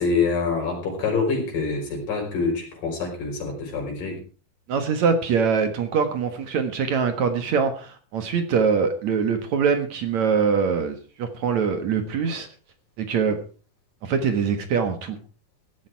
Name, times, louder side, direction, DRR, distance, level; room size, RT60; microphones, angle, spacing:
voice 1, 0.0-4.2, left 4 dB, 70° left, 2 dB, 6.6 m, -26 dB
voice 2, 4.7-12.5 13.0-13.4 14.0-15.2, right 6 dB, 60° right, 8 dB, 2.5 m, -23 dB
16.0 x 12.5 x 4.7 m, 0.37 s
omnidirectional pair, 4.0 m